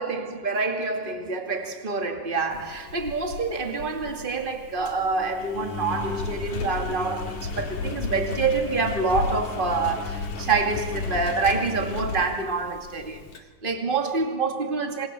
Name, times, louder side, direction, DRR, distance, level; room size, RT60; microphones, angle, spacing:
voice 1, 0.0-13.3 13.6-15.1, right 4 dB, 35° right, 0.7 m, -27 dB
Engine, 2.5-13.4, left 3 dB, 45° left, 3.3 m, -34 dB
28.5 x 28.0 x 7.6 m
omnidirectional pair, 5.3 m